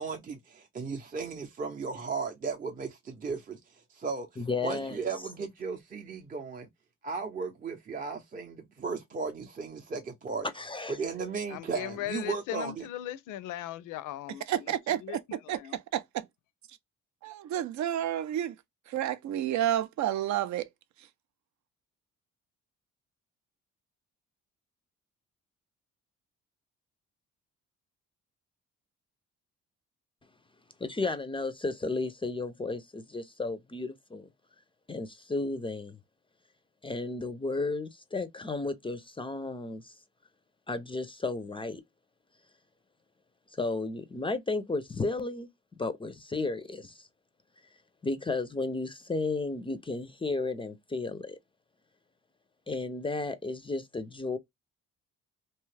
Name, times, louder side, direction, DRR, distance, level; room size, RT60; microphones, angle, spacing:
voice 1, 0.0-3.6 3.9-4.3 4.6-6.7 7.0-10.5 10.9-12.8, right 4 dB, 30° right, 0.6 m, -35 dB
voice 2, 4.4-5.0 10.5-11.0 30.8-34.3 34.9-36.0 36.8-39.9 40.7-41.8 43.5-45.5 45.8-47.1 48.0-51.4 52.7-54.4, left 3 dB, 15° left, 0.4 m, -33 dB
voice 3, 11.5-15.2 15.5-15.7, left 14 dB, 85° left, 0.5 m, -38 dB
voice 4, 14.5-15.0 15.5-15.6 15.9-16.0 17.2-18.6 18.9-20.7, right 11 dB, 70° right, 0.5 m, -30 dB
2.8 x 2.3 x 3.2 m
cardioid pair, 90°, 30 cm